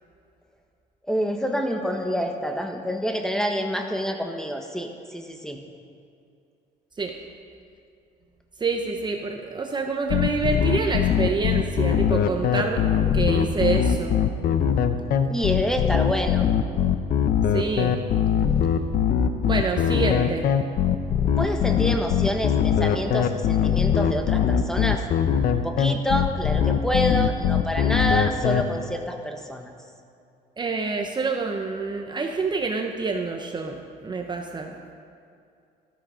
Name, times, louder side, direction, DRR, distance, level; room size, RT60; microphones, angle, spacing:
voice 1, 1.1-5.6 15.3-16.4 21.4-25.0 25.5-29.7, equal, 5° left, 3 dB, 1.4 m, -27 dB
voice 2, 8.6-12.8 13.1-14.2 17.5-18.0 19.4-20.5 30.6-34.7, right 4 dB, 25° right, 3 dB, 0.9 m, -27 dB
sound 1, 10.1-28.6, left 8 dB, 60° left, 0.8 m, -21 dB
13.5 x 12.5 x 5.2 m, 2.5 s
cardioid pair, 110°, 17 cm